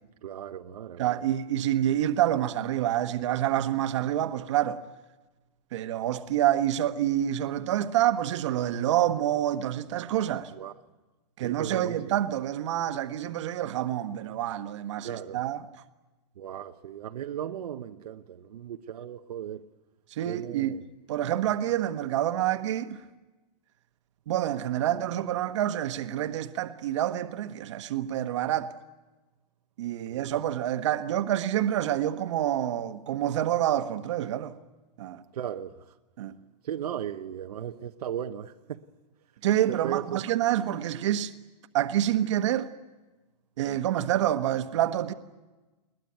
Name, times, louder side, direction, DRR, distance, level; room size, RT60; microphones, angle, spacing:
voice 1, 0.2-1.2 10.5-10.7 11.4-12.0 15.0-15.4 16.4-19.6 20.2-20.8 30.1-30.2 35.3-35.8 36.6-38.8 39.7-40.2, right 10 dB, 70° right, 1.0 m, -36 dB
voice 2, 1.0-4.8 5.7-10.5 11.4-15.6 20.1-20.8 21.1-23.0 24.3-28.7 29.8-34.5 35.0-35.2 36.2-36.3 39.4-41.3 41.7-42.7 43.6-45.1, right 12 dB, 45° right, 1.3 m, -27 dB
21.5 x 20.5 x 9.3 m
hypercardioid pair, 170°, 21 cm